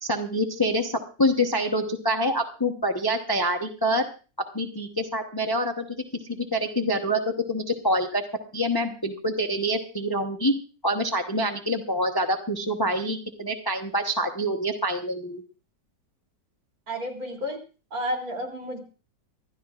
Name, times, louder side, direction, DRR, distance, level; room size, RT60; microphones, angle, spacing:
voice 1, 0.0-4.0 4.5-5.8 6.3-8.2 8.5-10.5 10.8-15.4, equal, 15° left, 4 dB, 0.9 m, -26 dB
voice 2, 16.9-17.6 17.9-18.8, equal, 55° right, 1 dB, 3.6 m, -31 dB
26.0 x 12.5 x 2.5 m, 0.35 s
omnidirectional pair, 1.9 m